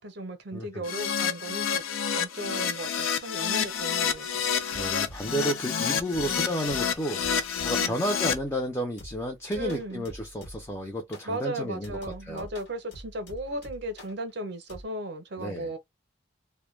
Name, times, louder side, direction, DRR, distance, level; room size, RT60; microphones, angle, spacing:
voice 1, 0.0-1.8 2.2-4.5 6.3-6.4 7.7-8.0 9.5-10.0 11.2-15.8, right 1 dB, 55° right, 0.6 m, -36 dB
voice 2, 0.5-0.8 4.7-12.0 12.2-12.5 15.4-15.7, equal, 15° left, 0.4 m, -32 dB
Keyboard (musical), 0.8-8.3, left 7 dB, 85° left, 0.5 m, -29 dB
sound 1, 4.7-5.6 6.1-7.9 8.3-8.7 9.0-10.8 11.1-11.4 11.8-14.2 14.7-14.8, equal, 55° left, 1.0 m, -46 dB
2.1 x 2.1 x 3.1 m
head